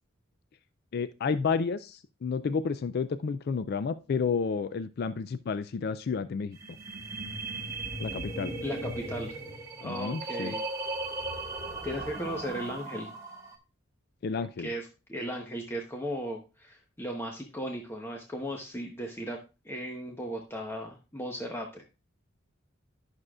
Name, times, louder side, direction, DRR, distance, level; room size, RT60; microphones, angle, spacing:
voice 1, 0.9-6.6 8.0-8.5 9.8-10.5 14.2-14.7, left 5 dB, 50° left, 14 dB, 0.3 m, -31 dB
sound 1, 6.6-13.6, right 2 dB, 15° right, 1.3 m, -37 dB
voice 2, 8.6-9.4 9.8-10.6 11.8-13.1 14.3-19.4 19.6-21.8, equal, 10° left, 1 dB, 0.9 m, -36 dB
11.0 x 6.4 x 2.4 m, 0.30 s
head